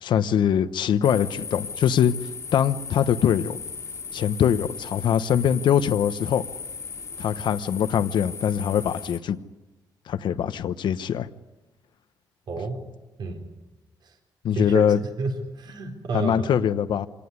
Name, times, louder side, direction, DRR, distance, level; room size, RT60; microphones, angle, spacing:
voice 1, 0.0-3.6 4.1-6.4 7.2-9.4 10.1-11.3 14.4-15.0 16.1-17.1, left 9 dB, 80° left, 12 dB, 1.1 m, -23 dB
sound 1, 1.0-9.2, left 5 dB, 40° left, 1.9 m, -37 dB
voice 2, 12.5-12.8 13.2-13.4 14.0-14.1 14.6-14.8 15.2-16.5, right 3 dB, 65° right, 3 dB, 4.0 m, -30 dB
26.5 x 18.5 x 9.7 m, 1.1 s
wide cardioid pair, 150°, 8 cm